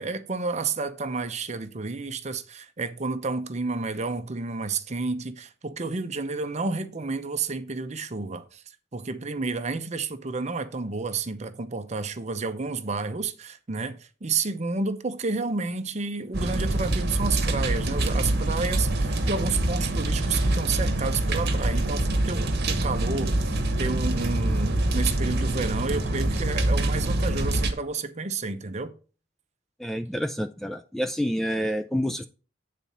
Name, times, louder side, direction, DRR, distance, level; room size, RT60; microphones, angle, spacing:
voice 1, 0.0-8.6 8.9-28.9, right 4 dB, 35° right, 0.7 m, -30 dB
sound 1, 16.3-27.7, right 1 dB, 55° right, 1.2 m, -25 dB
voice 2, 29.8-32.3, equal, ahead, 0.3 m, -28 dB
8.9 x 4.1 x 5.5 m
head